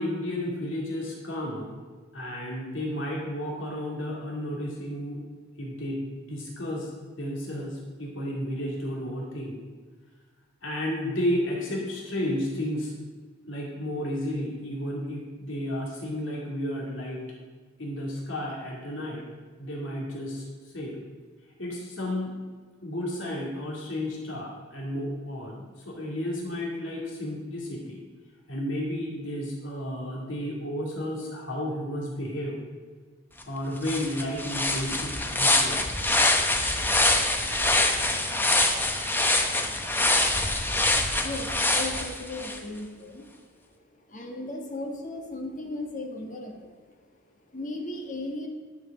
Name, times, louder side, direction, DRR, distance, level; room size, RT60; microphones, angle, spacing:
voice 1, 0.0-1.8 2.1-5.2 5.6-6.9 7.2-9.6 10.6-12.9 13.5-17.2 17.8-19.2 19.6-21.0 21.6-22.3 22.8-28.0 28.5-32.6 33.4-35.9, left 1 dB, 65° left, -3 dB, 2.3 m, -32 dB
sound 1, 33.4-33.5 33.8-42.6, left 2 dB, 10° left, 0.9 m, -24 dB
voice 2, 41.1-48.5, left 2 dB, 40° left, 2 dB, 1.6 m, -37 dB
11.5 x 6.5 x 7.2 m, 1.5 s
head